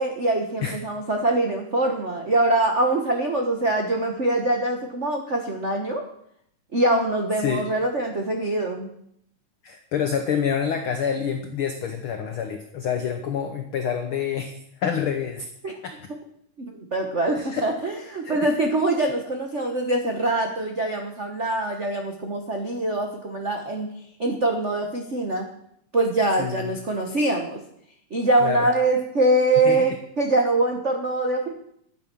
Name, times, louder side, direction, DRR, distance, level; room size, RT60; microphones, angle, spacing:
voice 1, 0.0-6.0 6.7-8.9 15.6-15.8 16.6-23.9 24.2-25.5 25.9-27.6 28.1-31.5, right 2 dB, 90° right, 2 dB, 0.6 m, -23 dB
voice 2, 9.6-15.5 15.8-16.1 17.3-17.7 18.2-18.6 26.4-26.8 28.4-28.7 29.6-29.8, left 7 dB, 70° left, 6 dB, 1.2 m, -27 dB
12.0 x 9.2 x 6.0 m, 0.70 s
omnidirectional pair, 3.5 m